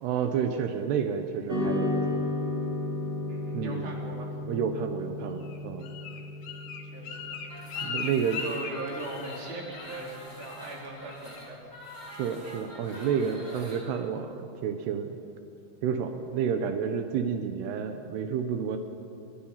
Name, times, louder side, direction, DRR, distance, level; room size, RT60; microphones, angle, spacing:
voice 1, 0.0-2.0 3.5-3.9 4.5-5.9 7.8-8.4 12.1-15.2 15.8-18.8, right 7 dB, 80° right, 6 dB, 3.2 m, -30 dB
sound 1, 1.5-10.0, left 2 dB, 20° right, 3.2 m, -34 dB
voice 2, 3.3-4.4 6.8-7.4 8.4-11.7, right 2 dB, 60° right, -1 dB, 5.4 m, -40 dB
Bird, 5.4-9.5 9.8-10.1 10.4-10.8 11.1-11.5 11.9-12.0, left 6 dB, 70° left, 3.5 m, -39 dB
sound 2, 7.4-13.8, left 1 dB, 25° left, 5.1 m, -45 dB
29.0 x 23.0 x 5.8 m, 2.7 s
omnidirectional pair, 4.7 m